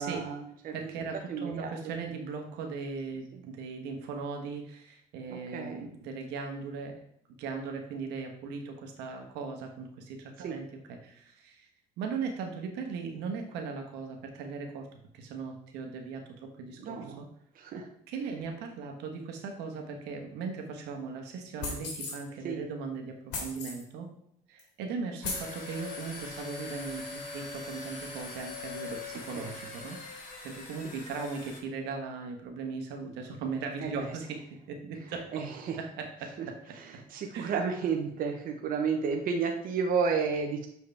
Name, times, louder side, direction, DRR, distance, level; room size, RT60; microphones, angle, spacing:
voice 1, 0.0-0.9 1.3-1.7 5.3-5.9 10.4-10.5 16.8-17.2 17.6-17.9 22.4-22.6 29.3-29.5 33.8-34.1 35.3-35.8 36.8-40.7, right 5 dB, 55° right, 3 dB, 0.9 m, -32 dB
voice 2, 0.7-7.0 7.4-11.7 12.0-14.9 15.1-17.3 18.1-23.1 23.4-24.1 24.5-30.0 30.4-34.4 34.7-35.4 35.8-36.3 37.3-37.5, right 5 dB, 90° right, 3 dB, 1.2 m, -38 dB
sound 1, 21.6-22.2 23.3-23.8 24.6-24.7 25.2-25.5, left 3 dB, 80° left, 2.2 m, -36 dB
sound 2, 25.2-31.6, left 3 dB, 50° left, 2.0 m, -42 dB
6.8 x 4.7 x 3.4 m, 0.72 s
cardioid pair, 110°, 17 cm